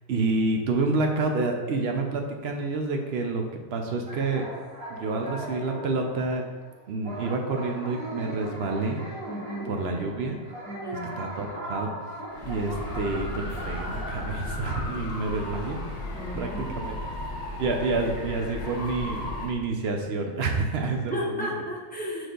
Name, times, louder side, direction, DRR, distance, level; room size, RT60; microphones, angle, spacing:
voice 1, 0.1-4.5 4.9-6.4 6.9-9.0 9.7-10.4 11.2-11.9 12.4-15.8 16.3-17.0 17.6-21.5, right 3 dB, 75° right, 2 dB, 0.5 m, -28 dB
sound 1, 4.1-14.8, right 1 dB, 35° right, 1.5 m, -39 dB
voice 2, 9.2-9.8 10.6-11.2 16.1-16.8 20.8-22.3, equal, 5° left, -4 dB, 0.8 m, -34 dB
sound 2, 12.3-19.5, left 1 dB, 45° left, 1.2 m, -35 dB
6.2 x 4.9 x 3.8 m, 1.3 s
omnidirectional pair, 1.9 m